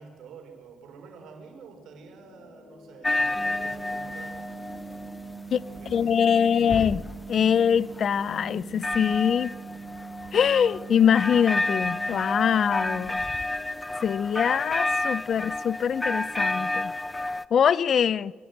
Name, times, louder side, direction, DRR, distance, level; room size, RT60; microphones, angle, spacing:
voice 1, 0.0-4.6 5.7-6.8, right 5 dB, 80° right, 4.4 m, -48 dB
sound 1, 1.6-12.5, left 3 dB, 90° left, 3.8 m, -56 dB
sound 2, 3.0-17.5, left 2 dB, 15° left, 0.6 m, -31 dB
sound 3, 3.3-13.1, right 6 dB, 50° right, 0.6 m, -42 dB
voice 2, 5.5-7.0 7.3-9.5 10.3-13.2 14.0-16.9 17.5-18.3, left 8 dB, 55° left, 0.5 m, -23 dB
23.0 x 15.5 x 8.0 m
cardioid pair, 90°, 0 cm